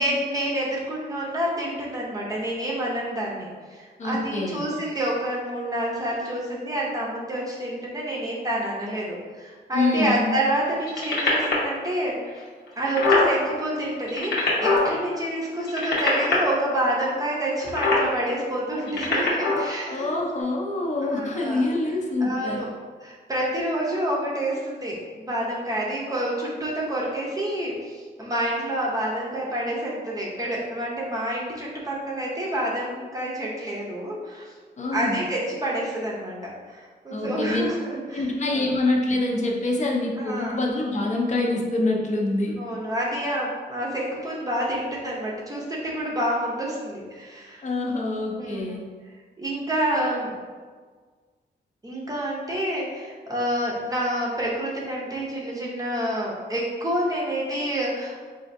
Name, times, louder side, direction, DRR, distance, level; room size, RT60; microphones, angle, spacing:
voice 1, 0.0-12.3 12.8-20.1 21.0-21.7 22.2-22.7 23.0-34.5 34.9-38.2 38.5-38.7 40.2-40.6 42.5-47.6 48.3-48.8 49.4-50.3 51.8-58.2, right 1 dB, 20° right, -4 dB, 0.6 m, -28 dB
voice 2, 4.0-4.6 9.7-10.3 19.9-22.7 34.8-35.2 37.1-37.6 38.1-42.6 47.6-48.9, left 2 dB, 40° left, 0 dB, 0.5 m, -25 dB
sound 1, 10.8-11.7 12.4-12.5 12.7-13.3 14.0-14.9 15.6-16.3 17.6-18.1 18.8-19.7 20.4-20.5, left 3 dB, 80° left, 0.9 m, -22 dB
4.2 x 2.5 x 2.5 m, 1.5 s
wide cardioid pair, 145°, 18 cm